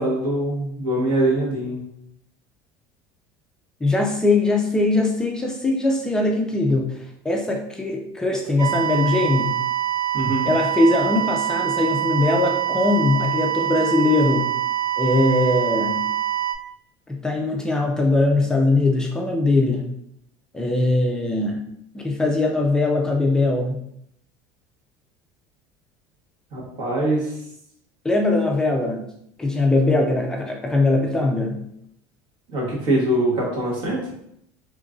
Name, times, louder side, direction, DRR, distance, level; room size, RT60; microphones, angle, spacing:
voice 1, 0.0-1.8 10.1-10.5 26.5-27.3 32.5-34.1, right 1 dB, 70° right, -3 dB, 1.4 m, -23 dB
voice 2, 3.8-9.6 10.5-14.5 15.0-16.0 17.1-19.9 20.5-21.6 21.9-23.8 28.0-29.1 29.4-31.6, left 2 dB, 10° left, 0 dB, 0.3 m, -21 dB
sound 1, 8.6-16.5, right 11 dB, 45° right, 0.6 m, -24 dB
3.0 x 2.5 x 3.6 m, 0.73 s
cardioid pair, 165°, 9 cm